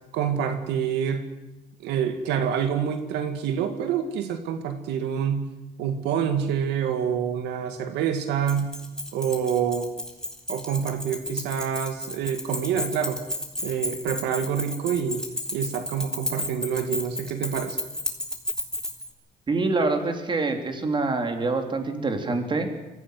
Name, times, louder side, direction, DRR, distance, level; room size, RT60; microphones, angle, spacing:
voice 1, 0.1-1.3 1.8-5.5 5.8-8.7 9.1-9.9 10.5-13.2 13.6-15.3 15.5-17.8, right 8 dB, 85° right, 7 dB, 2.0 m, -27 dB
Keys jangling, 8.5-19.1, left 1 dB, 5° left, 3.7 m, -32 dB
voice 2, 19.5-22.7, right 3 dB, 30° right, 5 dB, 3.5 m, -25 dB
23.5 x 15.5 x 9.5 m, 1.0 s
cardioid pair, 110°, 17 cm